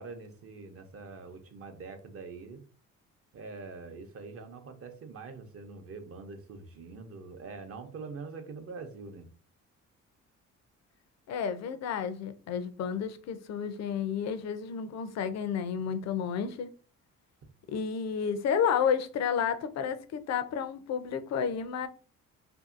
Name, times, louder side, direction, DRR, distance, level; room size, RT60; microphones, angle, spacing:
voice 1, 0.0-2.6 3.3-9.3, right 4 dB, 50° right, 0.6 m, -44 dB
voice 2, 11.3-16.7 17.7-21.9, left 7 dB, 60° left, 0.5 m, -31 dB
2.6 x 2.6 x 2.5 m
cardioid pair, 90°, 30 cm